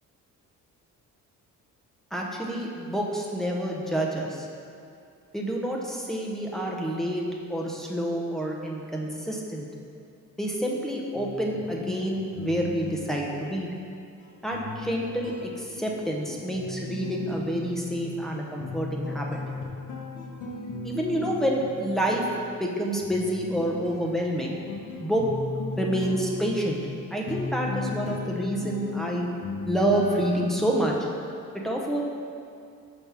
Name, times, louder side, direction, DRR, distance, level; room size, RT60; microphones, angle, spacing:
voice 1, 2.1-4.5 5.3-7.2 7.5-9.7 10.4-13.7 14.4-19.4 20.8-22.2 22.6-24.6 25.0-25.3 25.8-26.8 27.1-29.3 29.7-30.9 31.5-32.0, right 1 dB, ahead, -2 dB, 0.6 m, -28 dB
sound 1, 11.1-31.0, left 4 dB, 70° left, 0.9 m, -37 dB
5.9 x 3.5 x 5.5 m, 2.5 s
cardioid pair, 155°, 32 cm